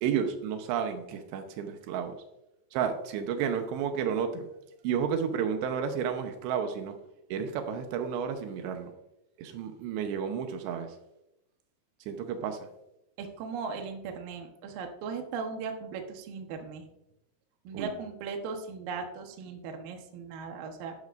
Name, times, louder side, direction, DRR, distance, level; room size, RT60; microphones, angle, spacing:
voice 1, 0.0-2.1 2.7-4.5 4.8-7.0 7.3-8.9 9.4-10.9 12.1-12.7 17.7-17.9, right 7 dB, 85° right, 6 dB, 3.2 m, -31 dB
voice 2, 13.2-16.8 17.6-20.9, right 5 dB, 65° right, 4 dB, 2.6 m, -38 dB
12.0 x 11.5 x 2.6 m, 0.87 s
omnidirectional pair, 4.9 m